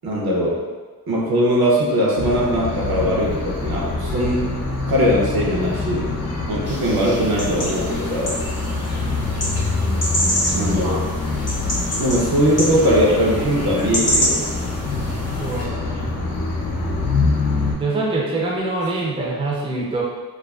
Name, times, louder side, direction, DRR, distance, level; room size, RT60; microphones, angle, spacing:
voice 1, 0.0-0.6 1.1-4.5 4.9-6.1 6.5-8.3 10.5-11.1 12.0-14.5, equal, 75° right, -4 dB, 0.6 m, -20 dB
sound 1, 2.2-17.7, left 3 dB, 80° left, 0.6 m, -25 dB
sound 2, 6.6-15.6, equal, 45° left, 0.7 m, -27 dB
voice 2, 15.4-16.1 17.8-20.0, right 2 dB, 15° right, -3 dB, 0.4 m, -24 dB
2.4 x 2.3 x 2.3 m, 1.3 s
wide cardioid pair, 95°, 38 cm